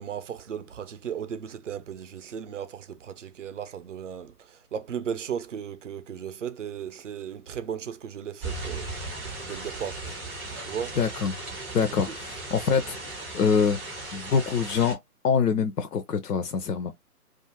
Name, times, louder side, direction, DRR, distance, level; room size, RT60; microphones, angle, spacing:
voice 1, 0.0-8.9 9.4-10.0 10.7-11.0 11.8-12.1, right 8 dB, 50° right, 0.5 m, -36 dB
sound 1, 8.4-14.9, right 2 dB, 10° right, 0.7 m, -37 dB
voice 2, 11.0-11.3 11.7-13.8 14.1-15.0 15.2-16.9, left 6 dB, 85° left, 0.6 m, -25 dB
2.4 x 2.4 x 2.8 m
figure-of-eight pair, 150°, 47 cm